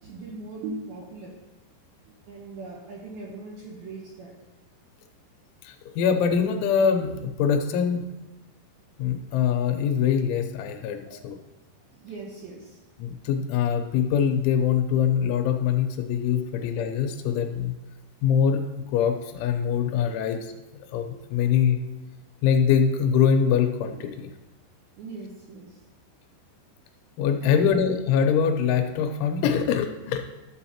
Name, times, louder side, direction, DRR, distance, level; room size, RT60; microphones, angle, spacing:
voice 1, 0.0-1.4 2.3-4.3 11.0-11.2 11.9-12.8 20.1-20.2 25.0-25.8 27.4-27.9, right 3 dB, 75° right, -2 dB, 2.3 m, -40 dB
voice 2, 5.6-8.1 9.0-11.4 13.0-17.7 18.2-20.6 20.9-21.8 22.4-24.3 27.2-30.3, left 7 dB, 90° left, 6 dB, 3.1 m, -23 dB
12.0 x 7.1 x 2.9 m, 1.1 s
omnidirectional pair, 5.5 m